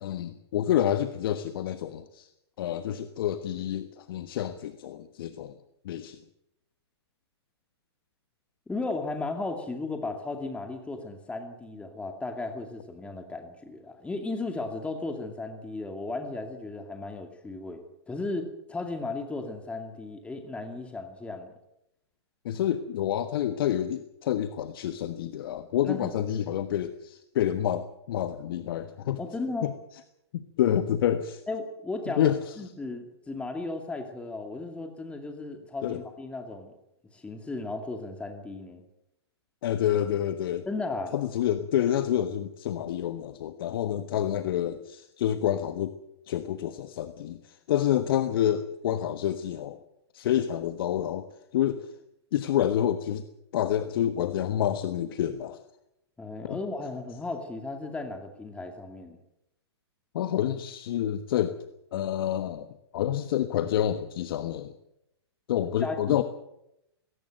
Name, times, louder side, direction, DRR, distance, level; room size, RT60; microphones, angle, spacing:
voice 1, 0.0-2.3 2.6-5.6 5.8-6.2 22.4-29.2 29.6-29.7 30.3-31.4 32.2-32.4 35.8-36.0 39.6-40.7 41.1-45.9 46.3-49.8 50.1-51.3 51.5-51.9 52.3-53.2 53.5-55.6 56.5-56.6 60.1-61.6 61.9-62.7 62.9-64.7 65.5-66.2, left 11 dB, 55° left, 10 dB, 1.3 m, -28 dB
voice 2, 8.7-21.5 25.8-26.1 29.2-29.7 31.5-36.8 37.1-38.8 40.7-41.1 56.2-59.2 65.8-66.2, left 3 dB, 10° left, 5 dB, 2.4 m, -35 dB
19.0 x 18.0 x 7.8 m, 0.84 s
hypercardioid pair, 120°, 14 cm